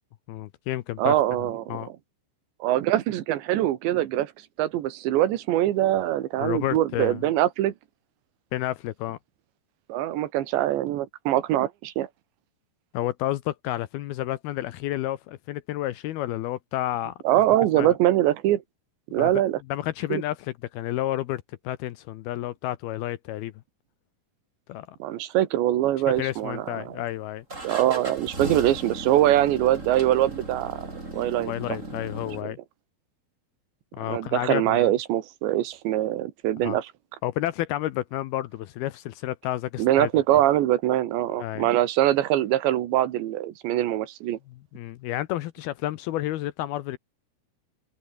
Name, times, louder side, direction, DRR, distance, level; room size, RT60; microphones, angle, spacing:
voice 1, 0.3-1.2 1.7-1.9 6.4-7.2 8.5-9.2 12.9-17.1 17.8-18.0 19.2-19.3 19.7-23.5 24.7-25.0 26.2-27.4 31.4-32.6 33.9-34.9 36.6-36.8 37.2-40.1 41.4-41.7 44.5-47.0, left 14 dB, 75° left, 2.5 m, -30 dB
voice 2, 1.0-1.9 2.6-4.3 4.6-7.7 9.9-12.1 17.3-18.6 19.1-19.6 20.1-20.2 25.0-27.0 27.6-30.9 31.1-31.5 32.4-32.5 34.1-36.9 39.8-44.4, right 13 dB, 80° right, 3.8 m, -23 dB
sound 1, 26.1-26.8 27.5-32.4, right 2 dB, 15° right, 5.5 m, -37 dB
open air
omnidirectional pair, 5.1 m